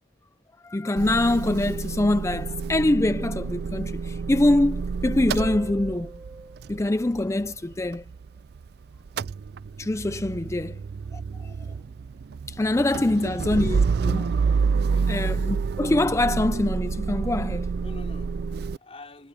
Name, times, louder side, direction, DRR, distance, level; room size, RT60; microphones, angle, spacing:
voice 1, 0.6-6.1 6.7-8.0 9.8-10.8 11.1-11.5 12.5-14.3 15.1-17.7, left 1 dB, 15° left, 0.4 m, -24 dB
Motor vehicle (road) / Engine starting / Idling, 1.0-8.7 8.9-18.8, right 5 dB, 60° right, 0.4 m, -29 dB
Harp, 5.4-7.9 11.4-11.5, right 2 dB, 20° right, 1.1 m, -42 dB
voice 2, 13.0-13.5 14.8-15.3 17.8-19.3, left 2 dB, 35° left, 4.5 m, -47 dB
head